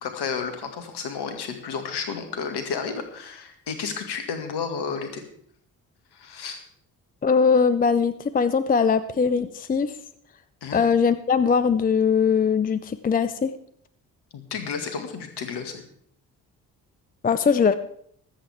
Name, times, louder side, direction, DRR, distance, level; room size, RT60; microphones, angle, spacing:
voice 1, 0.0-5.2 6.1-6.6 10.6-10.8 14.3-15.8, left 5 dB, 55° left, 7 dB, 2.1 m, -32 dB
voice 2, 7.2-9.9 10.7-13.5 17.2-17.7, left 6 dB, 20° left, 13 dB, 0.6 m, -21 dB
24.5 x 8.3 x 3.5 m, 0.66 s
figure-of-eight pair, 40°, 48 cm